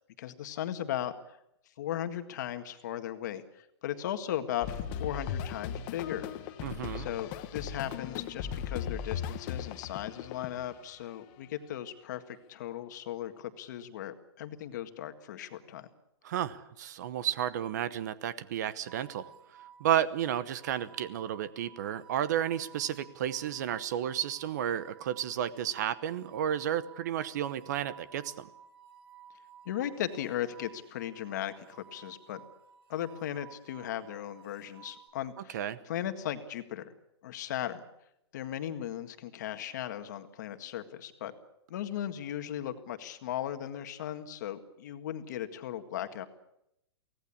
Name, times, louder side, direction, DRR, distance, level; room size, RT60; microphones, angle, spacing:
voice 1, 0.2-1.1 1.8-6.2 7.0-15.9 29.7-32.4 32.9-36.9 37.2-37.8 38.3-41.3 41.7-46.2, left 11 dB, 40° left, 8 dB, 1.8 m, -37 dB
sound 1, 4.6-10.7, left 8 dB, 25° left, 1.3 m, -37 dB
voice 2, 6.6-7.1 16.2-19.3 19.8-28.5 35.5-35.8, right 10 dB, 40° right, 16 dB, 0.9 m, -32 dB
sound 2, 18.9-35.1, right 8 dB, 60° right, 6.8 m, -55 dB
24.0 x 17.5 x 8.5 m, 0.80 s
hypercardioid pair, 175°, 14 cm